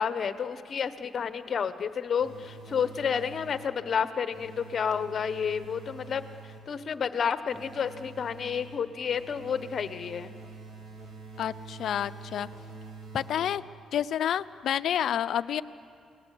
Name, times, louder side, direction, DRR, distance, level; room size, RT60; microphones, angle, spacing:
voice 1, 0.0-10.3, left 7 dB, 50° left, 11 dB, 1.2 m, -30 dB
sound 1, 2.2-3.9 4.3-6.8 7.5-13.9, right 3 dB, 60° right, 4.4 m, -46 dB
voice 2, 11.4-12.5 13.1-13.6 13.9-15.6, left 10 dB, 70° left, 13 dB, 0.7 m, -29 dB
29.5 x 19.5 x 8.5 m, 2.6 s
cardioid pair, 90°, 0 cm